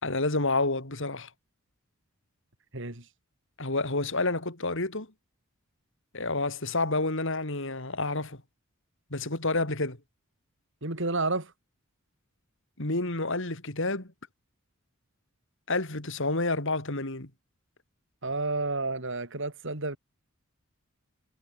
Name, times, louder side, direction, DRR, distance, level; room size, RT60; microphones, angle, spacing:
voice 1, 0.0-1.3 3.6-5.1 6.1-8.4 9.1-10.0 12.8-14.1 15.7-17.3, left 2 dB, 65° left, 4.2 m, -29 dB
voice 2, 2.7-3.0 10.8-11.5 18.2-20.0, right 3 dB, 65° right, 4.9 m, -30 dB
head